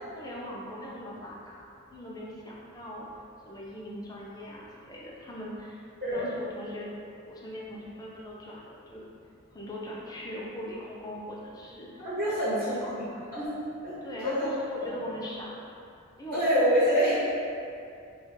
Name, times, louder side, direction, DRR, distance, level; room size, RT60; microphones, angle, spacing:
voice 1, 0.1-3.1 3.4-5.8 6.1-6.9 7.3-9.0 9.5-13.1 14.0-15.6 16.2-16.4, equal, 15° left, -5 dB, 0.6 m, -40 dB
voice 2, 12.0-12.7 13.3-14.0 14.2-14.5 16.3-17.1, equal, 40° right, -12 dB, 1.3 m, -26 dB
5.6 x 2.6 x 3.5 m, 2.5 s
head